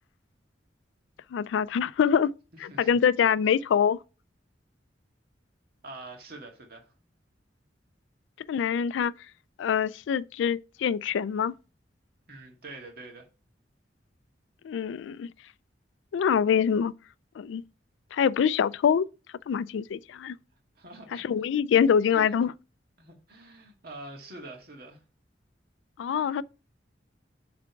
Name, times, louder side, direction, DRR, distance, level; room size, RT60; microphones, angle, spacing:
voice 1, 1.3-2.3 2.6-4.0 8.5-9.1 9.6-11.6 14.6-15.3 16.1-16.9 17.4-17.6 18.1-19.1 19.5-20.4 21.1-22.5 26.0-26.4, left 7 dB, 85° left, 0.3 m, -25 dB
voice 2, 2.7-3.0 5.8-6.9 12.3-13.3 20.8-21.2 22.1-22.2 23.0-25.0, right 2 dB, 55° right, 1.8 m, -45 dB
7.5 x 3.4 x 4.6 m
head